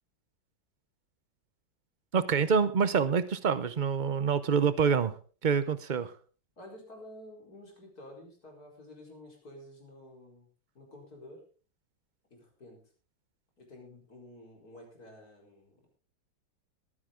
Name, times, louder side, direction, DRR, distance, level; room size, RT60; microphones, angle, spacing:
voice 1, 2.1-5.1 5.4-6.1, right 6 dB, 65° right, 14 dB, 0.4 m, -26 dB
voice 2, 6.6-10.5 10.7-11.4 12.3-12.8 13.6-15.8, left 1 dB, 50° left, 0 dB, 4.9 m, -50 dB
21.5 x 9.9 x 3.8 m, 0.38 s
omnidirectional pair, 2.0 m